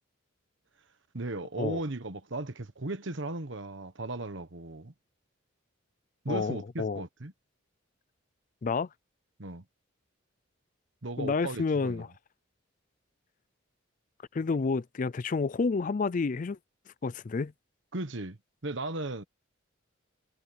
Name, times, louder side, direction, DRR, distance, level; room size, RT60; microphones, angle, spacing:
voice 1, 1.1-4.9 6.2-7.3 9.4-9.6 11.0-12.0 17.9-19.2, right 2 dB, 60° right, 1.3 m, -36 dB
voice 2, 6.3-7.0 8.6-8.9 11.2-12.1 14.3-16.6 17.0-17.5, left 4 dB, 40° left, 0.4 m, -29 dB
head